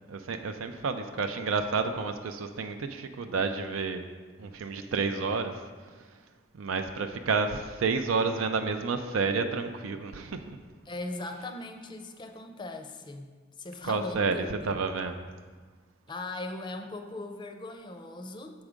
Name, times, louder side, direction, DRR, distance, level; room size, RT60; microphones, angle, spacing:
voice 1, 0.1-4.0 4.4-5.6 6.5-10.6 13.8-14.3 14.6-15.1, right 4 dB, 85° right, 7 dB, 0.4 m, -30 dB
voice 2, 10.8-14.8 16.1-18.7, left 2 dB, 25° left, 6 dB, 0.5 m, -39 dB
7.2 x 4.8 x 5.0 m, 1.5 s
head